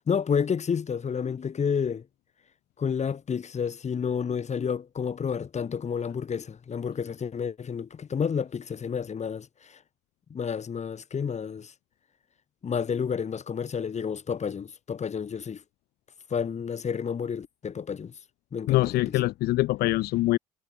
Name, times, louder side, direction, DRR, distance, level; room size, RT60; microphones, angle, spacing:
voice 1, 0.0-2.0 2.8-9.8 10.3-11.7 12.6-15.6 16.3-18.1 18.5-19.2, left 7 dB, 45° left, 2.3 m, -30 dB
voice 2, 18.7-20.4, left 17 dB, 70° left, 0.7 m, -24 dB
hypercardioid pair, 55°, 17 cm